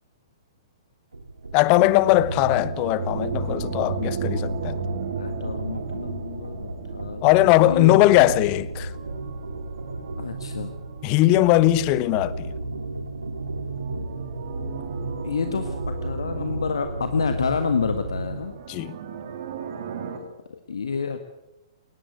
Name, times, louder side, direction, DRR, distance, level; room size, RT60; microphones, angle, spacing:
sound 1, 1.1-18.6, right 2 dB, 80° right, 2.0 m, -34 dB
voice 1, 1.5-4.8 7.2-8.9 11.0-12.5 18.7-19.0, left 16 dB, 35° left, 0.9 m, -19 dB
sound 2, 1.5-12.2 13.4-20.2, right 5 dB, 55° right, 3.3 m, -35 dB
voice 2, 5.2-8.0 10.2-10.7 15.2-18.5 20.1-21.2, left 5 dB, 70° left, 1.6 m, -29 dB
21.0 x 19.5 x 8.2 m
figure-of-eight pair, 115°, 3 cm